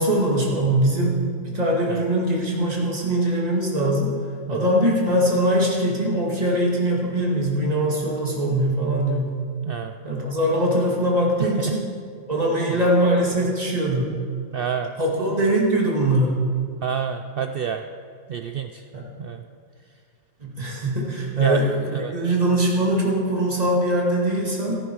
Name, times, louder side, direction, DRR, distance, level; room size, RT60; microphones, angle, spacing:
voice 1, 0.0-4.1 4.5-9.4 10.0-11.9 12.3-14.1 15.0-16.4 18.9-19.0 20.4-21.8 22.1-24.8, right 1 dB, 25° right, -3 dB, 2.3 m, -22 dB
voice 2, 11.4-11.8 12.7-12.8 14.5-14.9 16.8-17.8 18.3-18.8 19.2-19.4 21.4-21.6 21.9-22.1, right 8 dB, 85° right, 6 dB, 0.5 m, -28 dB
15.0 x 10.5 x 4.7 m, 2.1 s
omnidirectional pair, 1.5 m